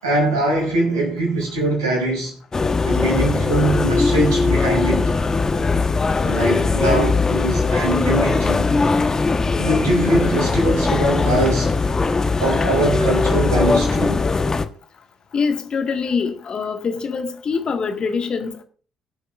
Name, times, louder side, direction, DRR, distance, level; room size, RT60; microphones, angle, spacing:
voice 1, 0.0-2.3 2.8-5.1 6.2-8.6 9.6-11.7 12.4-14.2, right 1 dB, 80° right, 5.7 m, -22 dB
sound 1, 2.5-14.7, left 3 dB, 25° left, 1.2 m, -20 dB
voice 2, 15.3-18.6, left 5 dB, 40° left, 1.8 m, -24 dB
24.0 x 8.5 x 2.5 m
figure-of-eight pair, 45°, 2 cm